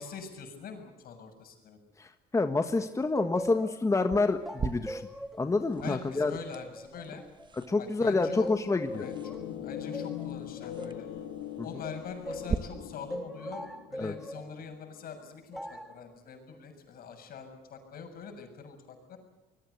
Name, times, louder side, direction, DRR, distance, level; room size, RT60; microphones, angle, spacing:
voice 1, 0.0-1.8 5.8-7.2 7.8-8.5 9.0-9.4 9.6-11.1 11.6-19.2, left 6 dB, 60° left, 6 dB, 7.1 m, -44 dB
voice 2, 2.0-5.0 5.4-6.4 7.7-9.1 14.0-14.1, left 3 dB, 20° left, 8 dB, 1.4 m, -28 dB
sound 1, 2.8-7.8 8.2-12.6 13.1-14.5 15.5-16.0, equal, ahead, 1.8 m, -42 dB
sound 2, 4.1-12.5, right 5 dB, 25° right, 1.2 m, -41 dB
sound 3, 8.9-15.1, left 11 dB, 90° left, 2.3 m, -41 dB
26.0 x 21.5 x 8.2 m, 1.0 s
cardioid pair, 110°, 17 cm